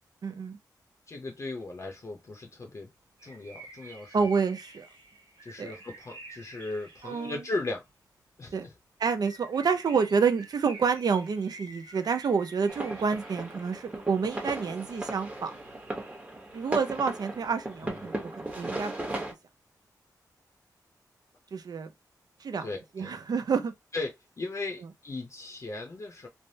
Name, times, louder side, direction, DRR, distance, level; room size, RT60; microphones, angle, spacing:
voice 1, 0.2-0.6 4.1-4.9 5.6-5.7 7.0-7.4 8.5-8.7 9.0-15.5 16.5-18.9 21.5-21.9 22.4-22.7 23.0-23.7, right 5 dB, 65° right, 0.5 m, -28 dB
voice 2, 1.1-2.9 3.2-4.3 5.4-7.8 8.4-8.7 17.9-18.1 22.6-23.1 23.9-24.1 24.4-26.3, left 2 dB, 45° left, 0.7 m, -37 dB
sound 1, 3.2-7.9 9.2-13.9, right 2 dB, 85° right, 1.0 m, -49 dB
sound 2, 12.7-19.3, right 1 dB, 20° right, 1.0 m, -37 dB
3.3 x 2.1 x 2.6 m
cardioid pair, 75°, 7 cm